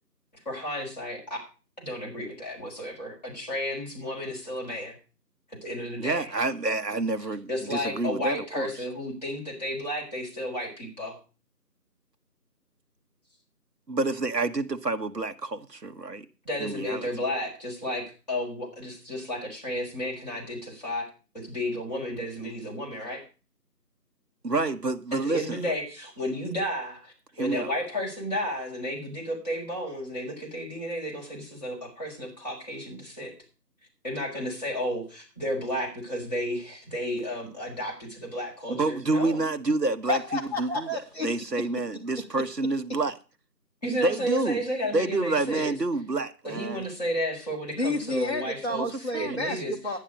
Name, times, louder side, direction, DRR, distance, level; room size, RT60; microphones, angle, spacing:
voice 1, 0.3-1.4 1.8-5.0 5.6-6.3 7.5-11.2 16.4-21.1 21.3-23.2 25.1-33.3 34.0-39.4 43.8-45.7 46.4-48.8 49.2-49.7, equal, 25° left, 4.3 m, -32 dB
voice 2, 6.0-8.7 13.9-16.3 16.6-17.1 24.4-25.6 27.4-27.7 38.7-40.2 40.6-40.9 41.2-43.1 44.0-44.6 44.9-46.8 48.7-48.9 49.1-49.4, right 2 dB, 75° right, 1.4 m, -28 dB
voice 3, 40.1-41.3 41.6-41.7 42.2-42.3 42.9-43.0 47.8-50.0, left 1 dB, 40° left, 1.9 m, -30 dB
11.0 x 10.0 x 5.1 m
figure-of-eight pair, 175°, 49 cm